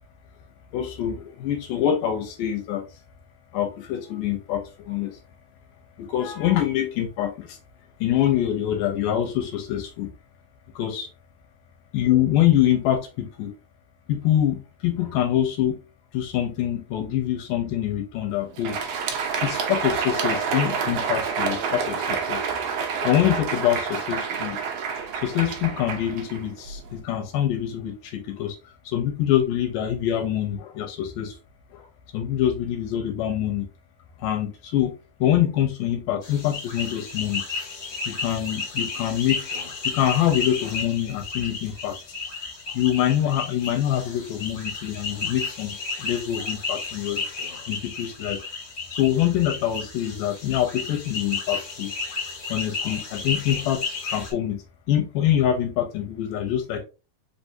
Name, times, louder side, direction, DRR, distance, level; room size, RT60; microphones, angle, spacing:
voice 1, 0.7-2.8 3.5-5.2 6.0-7.6 8.0-10.1 10.8-11.1 11.9-13.5 14.1-15.8 16.1-18.8 19.4-22.4 23.0-24.6 25.2-28.6 28.9-31.4 31.7-31.9 32.1-33.7 34.2-34.9 35.2-37.5 38.1-42.0 42.7-47.2 47.5-48.4 48.9-51.9 52.5-56.8, left 11 dB, 80° left, 5 dB, 2.2 m, -25 dB
Crowd, 18.4-26.9, right 6 dB, 75° right, 1.5 m, -28 dB
sound 1, 36.2-54.3, left 4 dB, 45° left, 1.6 m, -33 dB
5.0 x 3.4 x 2.6 m, 0.30 s
omnidirectional pair, 4.0 m